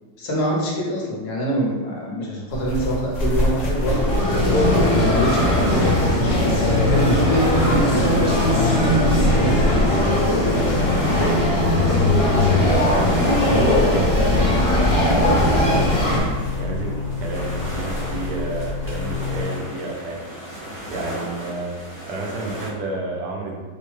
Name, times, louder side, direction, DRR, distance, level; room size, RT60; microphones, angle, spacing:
voice 1, 0.2-4.2 4.8-6.1 6.4-8.2 8.8-9.9, right 1 dB, 70° left, -3 dB, 1.3 m, -25 dB
sound 1, 2.5-19.4, left 1 dB, 90° left, 0.3 m, -29 dB
sound 2, 3.4-22.7, equal, 20° right, 1.2 m, -35 dB
sound 3, 3.7-16.2, left 1 dB, 30° left, 0.6 m, -19 dB
voice 2, 12.9-15.3 15.6-15.9 16.6-20.2 20.9-21.8 22.0-23.6, right 2 dB, 75° right, -1 dB, 1.2 m, -30 dB
4.4 x 2.1 x 3.1 m, 1.3 s
omnidirectional pair, 1.9 m